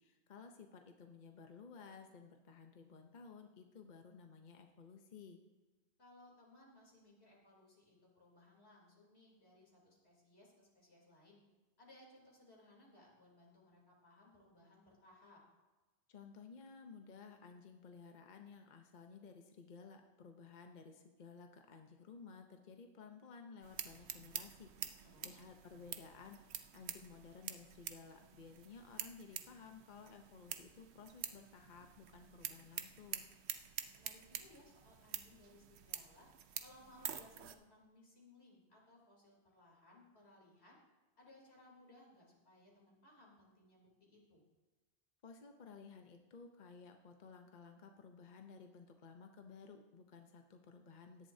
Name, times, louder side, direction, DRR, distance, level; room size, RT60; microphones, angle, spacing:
voice 1, 0.0-5.4 16.1-33.3 45.2-51.3, left 5 dB, 50° left, 4 dB, 0.9 m, -56 dB
voice 2, 6.0-11.4 11.8-15.4 25.0-25.4 33.9-36.3 36.6-40.8 41.2-44.4, left 1 dB, 85° left, -3 dB, 3.6 m, -63 dB
sound 1, 23.6-37.6, right 9 dB, 85° right, 1.0 m, -48 dB
17.0 x 11.0 x 2.8 m, 1.2 s
omnidirectional pair, 1.1 m